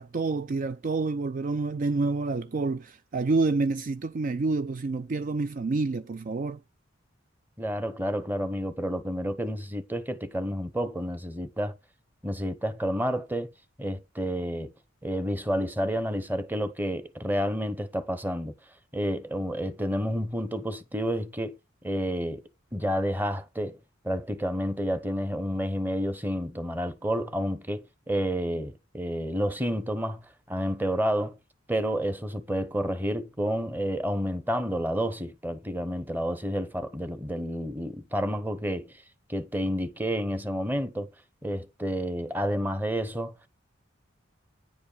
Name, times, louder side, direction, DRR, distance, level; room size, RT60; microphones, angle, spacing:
voice 1, 0.0-6.6, right 3 dB, 45° right, 0.4 m, -28 dB
voice 2, 7.6-11.7 12.2-13.5 13.8-14.7 15.0-18.5 18.9-21.5 21.8-22.4 22.7-23.8 24.0-31.4 31.7-38.9 39.3-41.1 41.4-43.4, equal, 10° right, 1.0 m, -30 dB
9.7 x 5.0 x 5.0 m
head